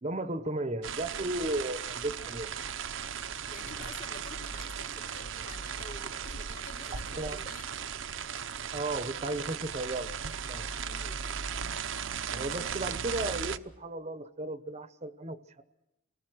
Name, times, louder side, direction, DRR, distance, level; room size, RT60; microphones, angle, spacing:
voice 1, 0.0-2.5 3.8-3.9 7.2-7.4 8.7-10.1 10.5-10.7 12.3-15.6, right 2 dB, 35° right, 12 dB, 1.0 m, -35 dB
sound 1, 0.8-13.6, right 7 dB, 75° right, 0.9 m, -37 dB
voice 2, 3.2-7.9 10.9-11.2, left 3 dB, 45° left, 3 dB, 3.0 m, -49 dB
29.0 x 19.5 x 6.2 m, 0.91 s
head